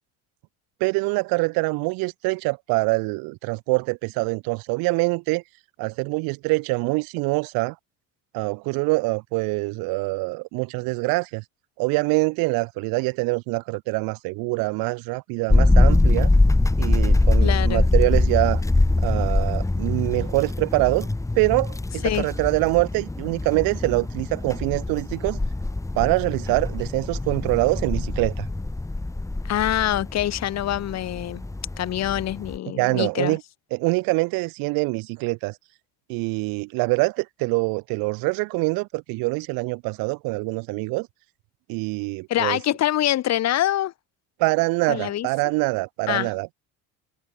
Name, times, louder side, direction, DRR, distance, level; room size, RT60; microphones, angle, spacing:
voice 1, 0.8-5.4 5.8-7.7 8.3-11.4 11.8-16.3 16.8-18.6 19.0-21.1 21.3-25.4 25.9-28.5 32.7-33.4 33.7-35.5 36.1-41.1 41.7-42.6 44.4-46.5, right 27 dB, 80° right, 1.1 m, -24 dB
sound 1, 15.5-32.6, left 2 dB, 10° left, 2.7 m, -23 dB
voice 2, 17.4-17.8 22.0-22.3 29.4-31.4 31.8-33.4 42.3-43.9 44.9-45.3 46.1-46.3, left 13 dB, 50° left, 2.0 m, -25 dB
cardioid pair, 125°, 35 cm